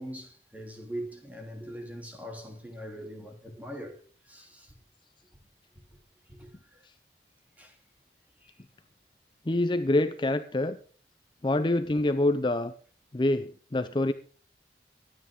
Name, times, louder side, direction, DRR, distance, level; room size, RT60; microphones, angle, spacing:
voice 1, 0.0-4.0 4.3-4.7 6.3-6.8 7.6-7.7 8.4-8.5, equal, 10° right, 3.0 m, -41 dB
voice 2, 9.5-10.8 11.4-12.7 13.1-14.1, left 1 dB, 25° left, 0.5 m, -26 dB
23.5 x 9.6 x 3.6 m
head